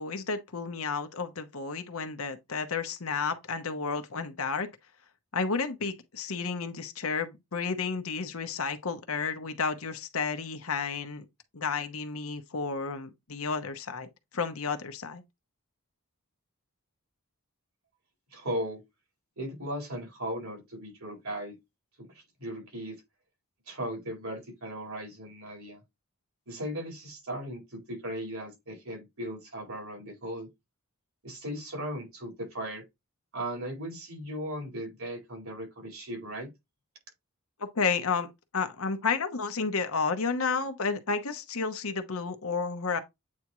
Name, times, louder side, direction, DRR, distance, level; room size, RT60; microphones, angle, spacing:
voice 1, 0.0-4.7 5.3-11.2 11.5-14.1 14.3-15.2 37.6-43.0, left 5 dB, 70° left, 1.0 m, -31 dB
voice 2, 18.3-18.8 19.4-21.5 22.0-22.1 22.4-23.0 23.7-25.8 26.5-30.5 31.2-32.8 33.3-36.5, equal, 70° right, 4.4 m, -37 dB
8.6 x 3.5 x 3.1 m
head